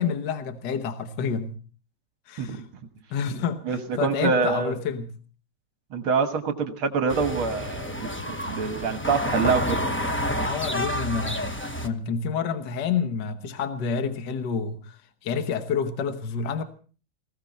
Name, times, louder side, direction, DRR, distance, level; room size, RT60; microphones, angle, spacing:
voice 1, 0.0-1.6 2.3-2.6 3.1-5.2 10.4-16.6, left 6 dB, 60° left, 1.7 m, -29 dB
voice 2, 3.7-4.8 5.9-9.8, right 5 dB, 75° right, 2.3 m, -25 dB
sound 1, 7.1-11.9, equal, 15° left, 0.4 m, -29 dB
20.0 x 16.0 x 4.2 m
omnidirectional pair, 2.3 m